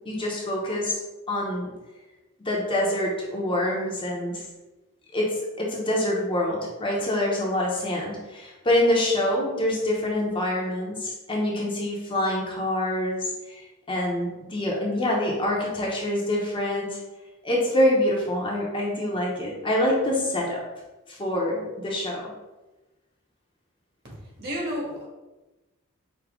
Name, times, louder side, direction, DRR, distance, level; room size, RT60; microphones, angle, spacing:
voice 1, 0.1-1.0 1.3-1.7 2.4-4.4 5.1-17.0 17.4-20.6 21.1-22.3, left 1 dB, 25° left, -3 dB, 0.7 m, -26 dB
voice 2, 24.4-25.1, equal, 45° right, -4 dB, 1.5 m, -30 dB
5.0 x 2.7 x 3.6 m, 1.1 s
head